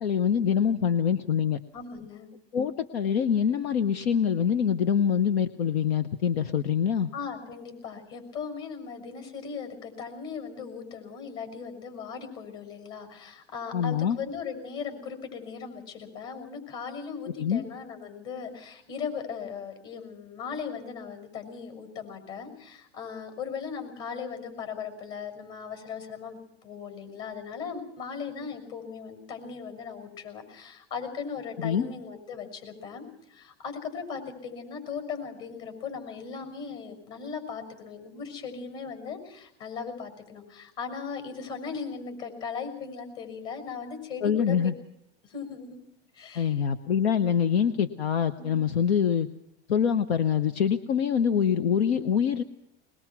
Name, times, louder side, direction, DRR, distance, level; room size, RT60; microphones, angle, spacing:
voice 1, 0.0-1.6 2.5-7.1 13.7-14.2 17.4-17.6 31.6-31.9 44.2-44.7 46.4-49.3 49.7-52.4, left 8 dB, 80° left, 11 dB, 1.0 m, -25 dB
voice 2, 1.7-2.3 7.1-44.6 45.2-45.8 46.1-46.6 48.4-48.6, left 6 dB, 45° left, 7 dB, 6.4 m, -38 dB
21.5 x 21.5 x 6.0 m, 0.78 s
supercardioid pair, 120°, 31 cm